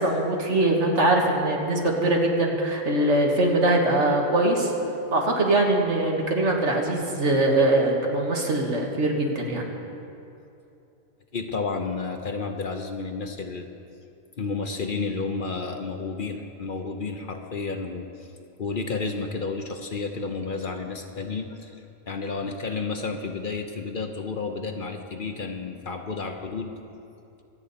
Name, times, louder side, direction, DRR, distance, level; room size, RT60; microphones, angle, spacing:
voice 1, 0.0-4.7 5.1-9.7, right 2 dB, 70° right, 0 dB, 1.9 m, -22 dB
voice 2, 11.3-13.7 14.4-18.3 18.6-26.7, left 4 dB, 50° left, 5 dB, 0.8 m, -31 dB
25.0 x 8.5 x 4.2 m, 2.7 s
omnidirectional pair, 1.2 m